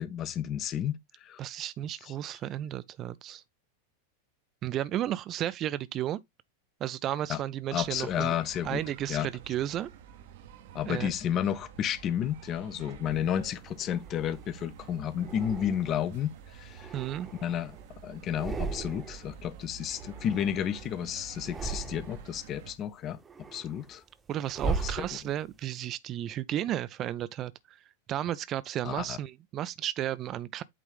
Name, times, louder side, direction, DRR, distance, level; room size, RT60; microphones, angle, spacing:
voice 1, 0.0-1.4 2.0-2.1 7.3-7.4 7.7-8.8 9.1-9.3 10.7-17.0 17.4-17.8 18.0-23.2 23.5-24.0 24.6-25.1 28.8-29.2, left 9 dB, 30° left, 0.7 m, -32 dB
voice 2, 1.4-3.4 4.6-6.2 6.8-8.3 8.6-9.9 10.9-11.1 16.9-17.3 24.3-27.5 28.1-30.6, right 12 dB, 30° right, 0.4 m, -33 dB
sound 1, 7.8-22.8, right 8 dB, 55° right, 0.8 m, -49 dB
sound 2, 13.3-14.5 15.2-16.2 16.6-17.9 18.2-19.3 19.6-20.9 21.3-22.4 22.8-25.6, right 4 dB, 15° right, 0.9 m, -38 dB
8.5 x 3.6 x 3.3 m
figure-of-eight pair, 90°, 0 cm